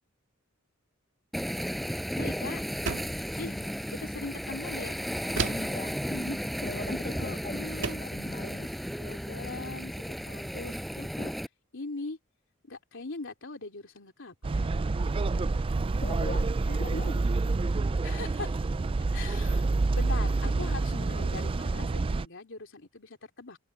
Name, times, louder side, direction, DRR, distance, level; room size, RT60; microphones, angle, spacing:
Waves surf, 1.3-11.5, equal, ahead, 5.4 m, -34 dB
voice 1, 2.2-2.6 3.4-3.5 4.0-5.0 7.1-8.0 9.0-11.3 11.7-12.2 12.6-14.7 18.0-18.7 19.1-19.7 19.9-23.6, left 3 dB, 60° left, 3.4 m, -41 dB
sound 1, 2.8-3.3 5.4-5.8 7.1-7.3 7.8-8.2, right 4 dB, 60° right, 1.9 m, -32 dB
voice 2, 3.4-3.7 5.5-8.7 16.0-17.3, left 1 dB, 40° left, 2.0 m, -39 dB
sound 2, 14.4-22.3, right 3 dB, 25° right, 0.3 m, -28 dB
head